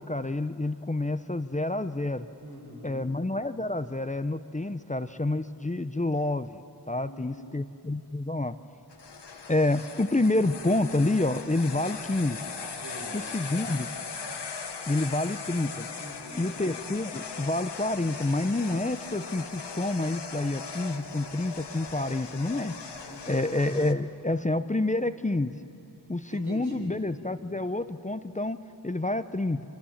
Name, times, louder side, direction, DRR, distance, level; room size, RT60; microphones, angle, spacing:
voice 1, 0.0-2.3 2.8-6.6 6.9-8.6 9.5-12.4 13.1-13.9 14.9-15.9 16.4-22.8 23.3-25.5 26.1-29.6, left 2 dB, 20° left, 11 dB, 0.7 m, -28 dB
voice 2, 2.4-3.1 6.9-7.6 12.8-13.2 16.0-16.5 23.0-23.5 26.3-26.9, equal, 80° right, -2 dB, 6.6 m, -44 dB
sound 1, 8.9-23.9, left 5 dB, 85° left, 1.2 m, -39 dB
26.0 x 26.0 x 7.4 m, 2.7 s
wide cardioid pair, 45°, 40 cm